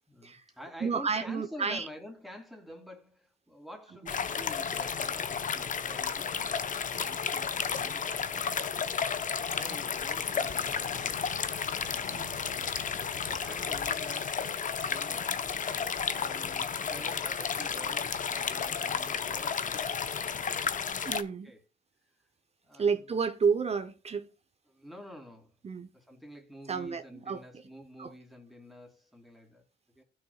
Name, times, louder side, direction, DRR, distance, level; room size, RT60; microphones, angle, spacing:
voice 1, 0.1-8.9 9.2-11.4 11.7-14.4 14.8-15.4 16.1-19.6 21.4-21.6 22.6-23.1 24.7-25.5 25.9-29.6 29.9-30.0, equal, ahead, 2.9 m, -49 dB
voice 2, 0.8-1.9 12.1-12.3 21.1-21.5 22.8-24.3 25.6-25.9 26.7-27.4 28.0-28.1, right 5 dB, 30° right, 0.8 m, -30 dB
sound 1, 4.1-21.2, left 6 dB, 40° left, 0.8 m, -32 dB
sound 2, 10.4-14.8, left 4 dB, 75° left, 2.6 m, -50 dB
15.5 x 6.5 x 2.4 m
cardioid pair, 90°, 20 cm